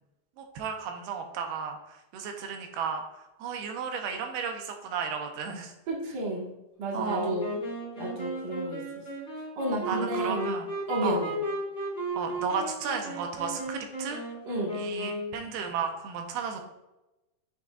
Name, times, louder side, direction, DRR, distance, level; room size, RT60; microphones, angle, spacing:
voice 1, 0.4-1.8 2.1-3.0 3.4-5.7 6.9-7.4 9.9-10.7 11.0-11.2 12.2-14.2 14.7-16.6, right 6 dB, 80° right, 4 dB, 2.6 m, -33 dB
voice 2, 5.9-6.5 6.8-7.5 7.9-8.8 9.5-10.5 10.9-11.4 14.4-14.8, right 1 dB, 45° right, -4 dB, 1.3 m, -32 dB
Wind instrument woodwind instrument, 7.0-15.4, equal, 25° left, 1.2 m, -34 dB
6.9 x 6.0 x 2.4 m, 0.97 s
omnidirectional pair, 4.5 m